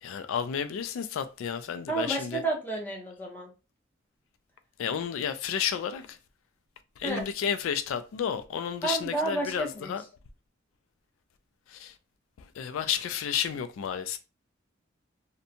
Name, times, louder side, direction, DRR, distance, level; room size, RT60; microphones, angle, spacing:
voice 1, 0.0-2.4 4.8-6.2 7.0-10.0 11.7-12.0 12.4-14.2, left 8 dB, 80° left, 0.3 m, -31 dB
voice 2, 1.9-3.5 7.0-7.3 8.8-9.9, right 2 dB, 10° left, 0.7 m, -31 dB
2.6 x 2.1 x 2.7 m
head